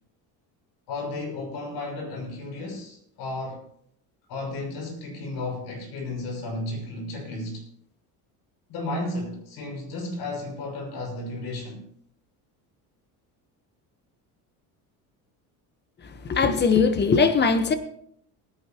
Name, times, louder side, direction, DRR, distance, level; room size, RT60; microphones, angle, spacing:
voice 1, 0.9-3.6 4.3-7.6 8.7-11.8, left 2 dB, 70° left, 5.9 m, -33 dB
voice 2, 16.2-17.8, left 5 dB, 25° left, 1.2 m, -20 dB
19.0 x 10.5 x 3.0 m
cardioid pair, 130°, 38 cm